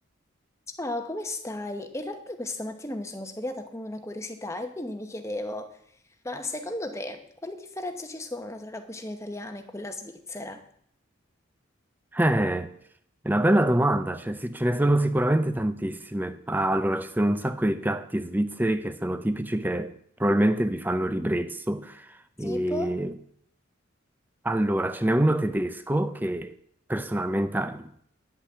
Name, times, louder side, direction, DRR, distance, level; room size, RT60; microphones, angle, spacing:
voice 1, 0.8-5.8 6.2-10.6 22.4-23.0, left 1 dB, 15° left, 0.9 m, -35 dB
voice 2, 12.1-12.7 13.2-19.9 20.2-22.1 22.4-23.1 24.4-26.6 26.9-27.9, right 1 dB, 10° right, 0.5 m, -25 dB
10.0 x 5.9 x 7.7 m
head